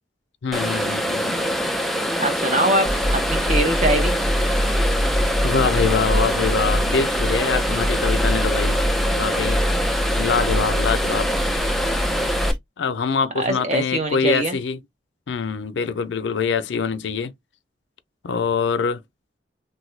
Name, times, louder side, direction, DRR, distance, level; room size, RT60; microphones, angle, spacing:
voice 1, 0.4-1.5 5.4-8.8 9.1-9.6 10.1-11.3 12.8-14.8 15.3-17.3 18.2-19.0, left 5 dB, 85° left, 0.5 m, -24 dB
sound 1, 0.5-12.5, equal, ahead, 0.3 m, -24 dB
voice 2, 2.2-4.1 13.4-14.6, right 1 dB, 40° right, 0.9 m, -23 dB
sound 2, 2.8-12.6, equal, 75° right, 1.0 m, -24 dB
3.0 x 2.3 x 3.1 m
head